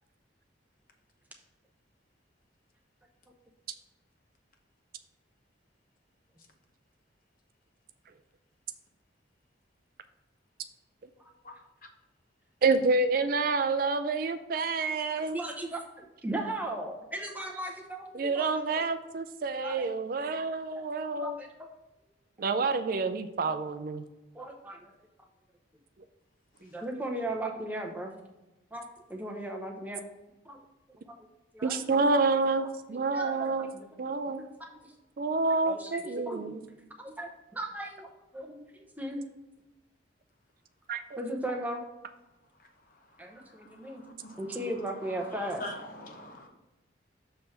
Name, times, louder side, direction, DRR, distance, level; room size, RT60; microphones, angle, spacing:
voice 1, 12.6-15.4 18.1-21.4 22.4-24.0 31.6-33.7 34.0-34.4 35.2-36.6 40.9-41.0, right 3 dB, 50° right, 9 dB, 0.4 m, -28 dB
voice 2, 15.3-18.8 19.6-19.9 20.7-20.9 21.1-21.7 24.3-24.9 26.6-28.1 28.7-30.0 30.4-30.6 31.1-31.3 31.5-32.2 32.6-33.9 34.4-34.5 34.8-34.9 35.6-36.6 37.0-38.1 38.3-39.2 41.2-41.8 43.2-44.0 44.4-45.6, right 1 dB, 10° right, 1 dB, 0.8 m, -37 dB
voice 3, 42.6-46.5, left 1 dB, 45° left, 3 dB, 0.9 m, -45 dB
6.9 x 3.3 x 5.8 m, 1.0 s
head